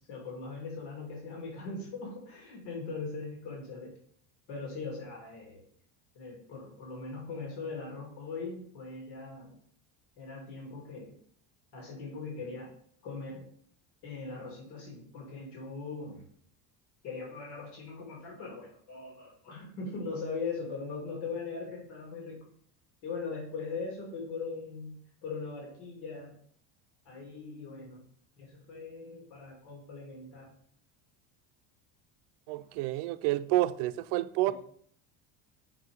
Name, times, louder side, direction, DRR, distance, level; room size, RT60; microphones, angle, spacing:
voice 1, 0.1-3.9 4.5-5.6 6.1-9.6 10.2-11.1 11.7-12.7 13.0-13.5 14.0-16.2 17.0-22.4 23.0-26.4 27.0-28.1 28.4-30.5 34.5-34.6, left 4 dB, 90° left, 2.7 m, -40 dB
voice 2, 32.5-34.5, right 16 dB, 70° right, 0.5 m, -29 dB
5.9 x 4.7 x 4.9 m
cardioid pair, 135°, 43 cm